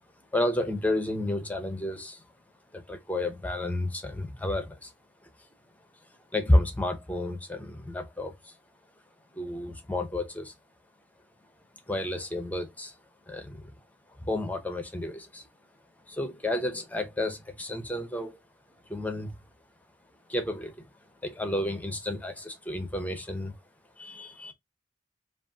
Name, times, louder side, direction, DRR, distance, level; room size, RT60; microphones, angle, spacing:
voice 1, 0.3-2.2 2.7-4.9 6.3-8.5 9.3-10.5 11.9-12.9 13.3-13.6 14.2-15.5 16.1-18.4 18.9-19.4 20.3-20.9 21.2-23.6 24.0-24.5, left 1 dB, 10° left, 0.8 m, -31 dB
5.1 x 2.6 x 2.8 m
head